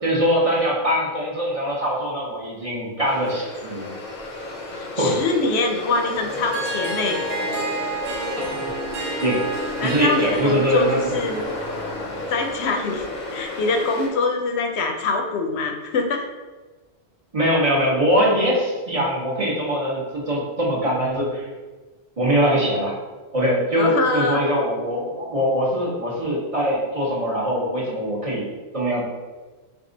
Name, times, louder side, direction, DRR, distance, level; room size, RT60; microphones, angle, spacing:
voice 1, 0.0-3.9 5.0-5.2 8.4-8.7 9.2-9.4 9.8-11.1 17.3-21.5 22.2-22.9 23.3-28.4 28.7-29.0, equal, 35° right, -5 dB, 1.0 m, -22 dB
sound 1, 3.0-14.1, left 2 dB, 45° left, 0.8 m, -32 dB
voice 2, 4.7-7.2 9.8-11.5 12.3-16.3 23.8-24.4, left 3 dB, 75° left, 3 dB, 0.8 m, -24 dB
Harp, 6.3-12.1, right 2 dB, 90° right, 1.0 m, -30 dB
4.6 x 2.4 x 3.8 m, 1.3 s
omnidirectional pair, 1.1 m